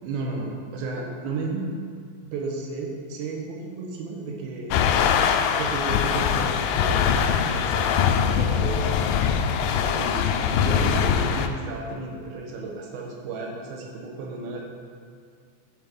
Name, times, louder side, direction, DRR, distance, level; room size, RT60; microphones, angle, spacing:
voice 1, 0.0-1.7 2.3-4.8 5.5-7.0 7.5-9.0 9.7-14.6, right 3 dB, 90° right, 0 dB, 3.1 m, -33 dB
sound 1, 4.7-11.5, left 7 dB, 85° left, 1.9 m, -22 dB
10.5 x 5.0 x 5.3 m, 2.2 s
omnidirectional pair, 4.3 m